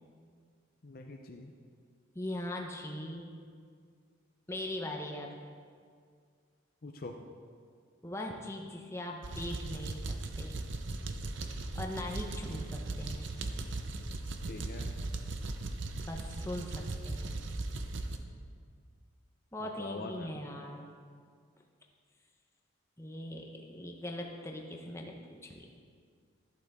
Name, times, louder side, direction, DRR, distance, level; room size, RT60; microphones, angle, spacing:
voice 1, 0.8-1.5 6.8-7.2 14.5-14.9 19.6-20.4, left 2 dB, 45° left, 3 dB, 0.6 m, -44 dB
voice 2, 2.1-3.3 4.5-5.3 8.0-10.6 11.7-13.3 16.0-17.4 19.5-20.9 23.0-25.7, left 1 dB, 15° left, 1 dB, 0.9 m, -40 dB
sound 1, 9.2-18.2, right 2 dB, 65° right, 0.7 m, -38 dB
12.0 x 12.0 x 3.6 m, 2.1 s
head